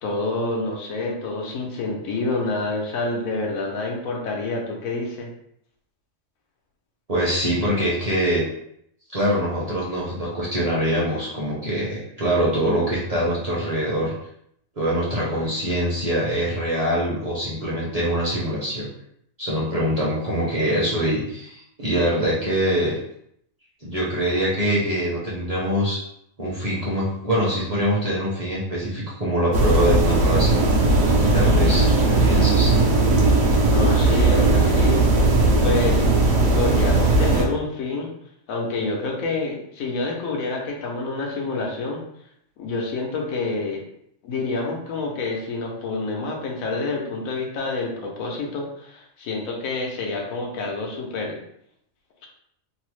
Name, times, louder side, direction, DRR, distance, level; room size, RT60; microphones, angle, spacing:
voice 1, 0.0-5.3 33.7-35.1 35.6-36.0 36.5-38.1 38.5-42.0 42.6-43.8 44.2-51.4, left 3 dB, 85° left, 0 dB, 1.1 m, -27 dB
voice 2, 7.1-8.4 9.1-14.1 14.8-18.9 19.4-22.9 23.8-26.0 26.4-30.6 31.3-32.7, equal, 40° right, -6 dB, 0.6 m, -24 dB
sound 1, 29.5-37.5, right 2 dB, 70° right, 0.9 m, -18 dB
3.0 x 2.0 x 3.0 m, 0.71 s
omnidirectional pair, 1.4 m